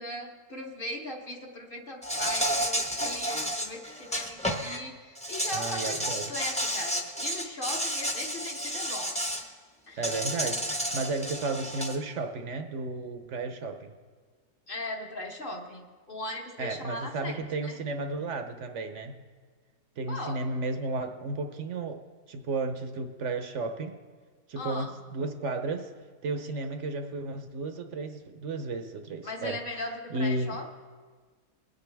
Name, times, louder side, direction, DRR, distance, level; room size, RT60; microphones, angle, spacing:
voice 1, 0.0-9.4 9.9-10.0 14.7-17.8 20.1-20.4 24.6-24.9 29.2-30.7, left 1 dB, 40° left, 2 dB, 1.0 m, -38 dB
Insect, 2.0-4.8 5.2-9.4 10.0-12.0, equal, 5° left, 0.7 m, -31 dB
voice 2, 5.5-6.3 10.0-13.9 16.6-19.1 20.0-22.0 22.3-24.0 24.5-25.9 26.2-29.6 30.1-30.6, right 3 dB, 55° right, 7 dB, 0.9 m, -33 dB
21.0 x 9.3 x 3.4 m, 1.5 s
omnidirectional pair, 1.8 m